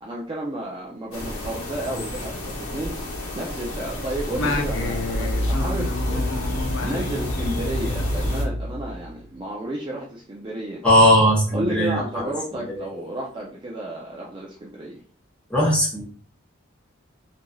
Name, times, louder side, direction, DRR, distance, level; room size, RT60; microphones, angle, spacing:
voice 1, 0.0-10.8 11.5-15.0, right 1 dB, 20° right, -3 dB, 0.4 m, -32 dB
sound 1, 1.1-8.4, left 1 dB, 80° left, 0.8 m, -32 dB
Singing, 4.3-9.1, left 1 dB, 60° left, 0.5 m, -27 dB
voice 2, 10.8-12.3 12.6-12.9 15.5-16.0, equal, 5° left, -6 dB, 1.0 m, -19 dB
3.0 x 2.5 x 2.2 m, 0.42 s
head